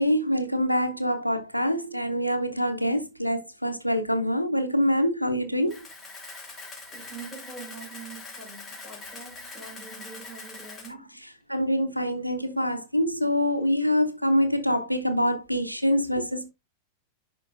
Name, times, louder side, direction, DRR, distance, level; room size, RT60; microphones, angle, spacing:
voice 1, 0.0-5.7 11.5-16.5, equal, 90° right, 0.7 m, -25 dB
Camera, 5.7-10.9, left 3 dB, 25° left, 3.2 m, -43 dB
voice 2, 6.9-11.2 15.9-16.1, right 4 dB, 5° left, 4.6 m, -44 dB
11.0 x 4.5 x 2.5 m
figure-of-eight pair, 90°, 0 cm